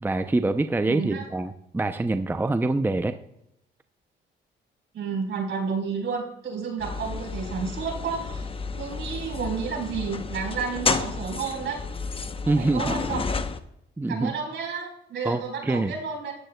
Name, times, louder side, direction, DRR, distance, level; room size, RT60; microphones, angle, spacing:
voice 1, 0.0-3.2 12.5-12.9 14.0-14.3 15.2-15.9, right 2 dB, 10° right, 9 dB, 0.5 m, -25 dB
voice 2, 0.9-1.3 4.9-8.5 8.7-11.8 12.6-13.3 14.1-16.3, right 5 dB, 70° right, 0 dB, 4.1 m, -31 dB
sound 1, 6.8-13.6, left 4 dB, 30° left, 0.7 m, -31 dB
14.0 x 10.0 x 2.2 m, 0.80 s
cardioid pair, 90°, 20 cm